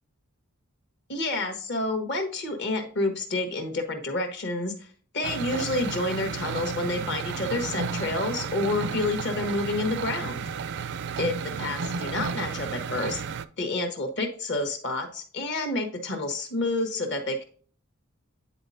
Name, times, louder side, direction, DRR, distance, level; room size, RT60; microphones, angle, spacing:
voice 1, 1.1-4.9 5.1-10.4 11.2-13.2 13.6-17.4, left 2 dB, 50° left, 5 dB, 1.4 m, -29 dB
sound 1, 5.2-13.5, right 6 dB, 50° right, 0.4 m, -33 dB
9.8 x 4.2 x 2.7 m, 0.43 s
head